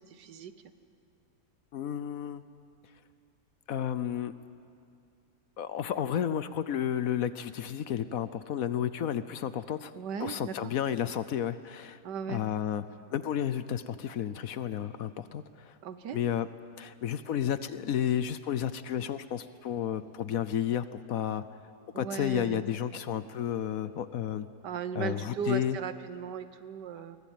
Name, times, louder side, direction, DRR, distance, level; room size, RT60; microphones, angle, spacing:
voice 1, 0.1-0.5 9.9-10.7 12.0-12.4 15.8-16.2 21.9-22.7 24.6-27.2, right 7 dB, 85° right, 11 dB, 1.6 m, -37 dB
voice 2, 1.7-2.4 3.7-4.3 5.6-9.9 10.2-12.0 12.3-12.8 13.1-15.8 16.1-16.5 16.8-21.4 22.0-24.5 24.9-25.8, left 10 dB, 65° left, 13 dB, 1.0 m, -32 dB
23.0 x 19.0 x 9.1 m, 2.4 s
omnidirectional pair, 1.8 m